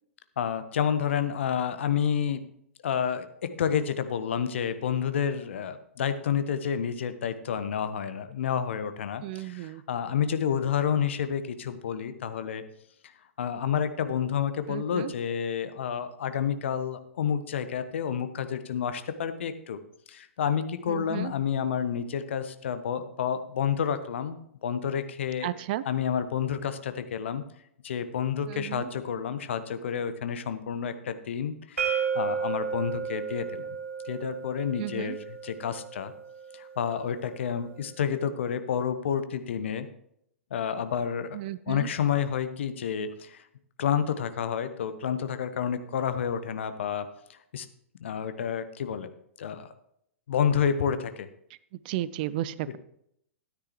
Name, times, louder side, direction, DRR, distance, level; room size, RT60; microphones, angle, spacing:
voice 1, 0.4-2.4 2.8-12.7 13.4-19.8 20.1-25.5 25.8-27.4 27.8-33.7 34.0-36.1 36.5-39.9 40.5-41.4 41.7-43.4 43.8-47.7 48.0-49.1 49.4-49.7 50.3-51.3, left 8 dB, 60° left, 11 dB, 0.9 m, -29 dB
voice 2, 9.2-9.8 14.7-15.1 20.9-21.3 25.4-25.8 28.5-28.9 34.8-35.2 41.3-41.9 51.9-52.8, right 14 dB, 40° right, 17 dB, 0.4 m, -33 dB
sound 1, 31.8-37.6, right 6 dB, 70° right, 1.3 m, -34 dB
13.0 x 9.7 x 3.0 m, 0.73 s
figure-of-eight pair, 105°, 7 cm